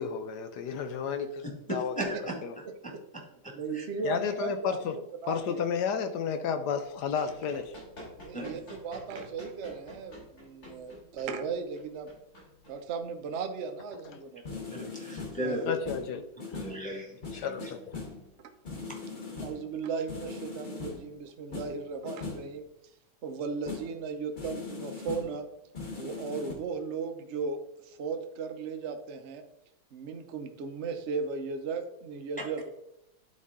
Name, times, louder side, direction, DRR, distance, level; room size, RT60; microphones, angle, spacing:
voice 1, 0.0-1.4 1.7-2.2 2.4-2.5 4.0-4.9 5.3-7.7 14.1-14.2 15.7-16.7 17.3-18.0, left 7 dB, 70° left, 8 dB, 1.0 m, -32 dB
voice 2, 1.9-2.3 3.4-3.8 8.3-8.6 14.7-15.7 16.6-17.5 19.1-19.3, right 1 dB, 5° left, -1 dB, 1.4 m, -36 dB
voice 3, 3.5-5.7 8.2-12.1 12.7-14.8 15.4-15.6 18.4-18.5 19.4-22.7 23.2-25.4 26.0-29.4 29.9-32.7, right 5 dB, 65° right, 5 dB, 0.6 m, -36 dB
Run, 7.3-13.3, equal, 45° left, 3.5 m, -49 dB
sound 1, 14.0-14.1 14.4-15.5 15.8-16.9 17.2-18.3 18.6-19.7 20.1-21.2 21.5-22.5 23.7-24.0 24.4-25.4 25.7-26.5, left 4 dB, 30° left, 1.1 m, -40 dB
10.5 x 4.2 x 3.6 m, 0.81 s
omnidirectional pair, 2.2 m